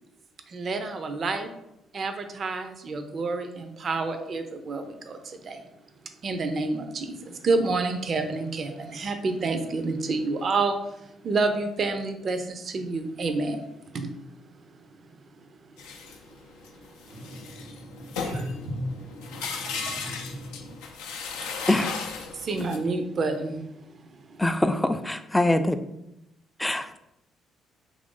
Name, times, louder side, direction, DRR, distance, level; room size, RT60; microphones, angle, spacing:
voice 1, 0.5-1.5 1.9-5.6 6.2-10.8 11.2-13.6 13.9-14.1 22.3-23.7, right 3 dB, 50° right, 7 dB, 0.4 m, -28 dB
sound 1, 15.8-22.8, left 5 dB, 85° left, 0.4 m, -36 dB
voice 2, 17.1-20.8, equal, 75° right, 2 dB, 0.8 m, -37 dB
voice 3, 21.7-22.0 24.4-25.8 26.6-27.0, left 1 dB, 10° left, 9 dB, 0.3 m, -24 dB
3.0 x 2.5 x 3.6 m, 0.85 s
hypercardioid pair, 55°, 0 cm